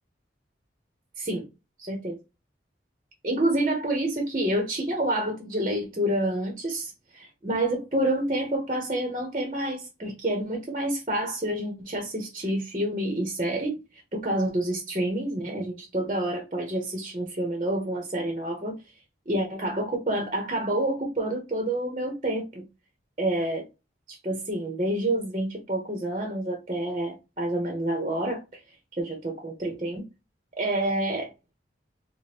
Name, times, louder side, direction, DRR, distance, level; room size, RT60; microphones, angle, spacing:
voice 1, 1.8-2.2 3.2-13.7 14.1-18.8 19.3-22.6 23.2-23.6 24.1-28.6 28.9-30.0 30.6-31.3, right 1 dB, 35° right, 0.9 m, -28 dB
5.0 x 2.2 x 2.8 m
head